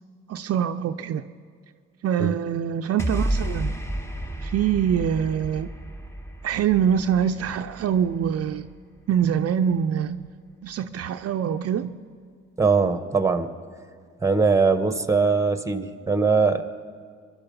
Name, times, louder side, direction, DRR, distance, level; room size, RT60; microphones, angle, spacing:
voice 1, 0.3-1.2 2.0-3.8 4.4-5.7 6.4-8.7 9.1-10.3 10.6-12.0, right 8 dB, 55° right, 8 dB, 0.6 m, -24 dB
sound 1, 3.0-9.4, right 1 dB, 10° left, 1.3 m, -32 dB
voice 2, 12.6-13.5 14.2-16.6, right 4 dB, 10° right, 10 dB, 1.1 m, -21 dB
23.5 x 11.5 x 5.4 m, 2.1 s
supercardioid pair, 65°, 29 cm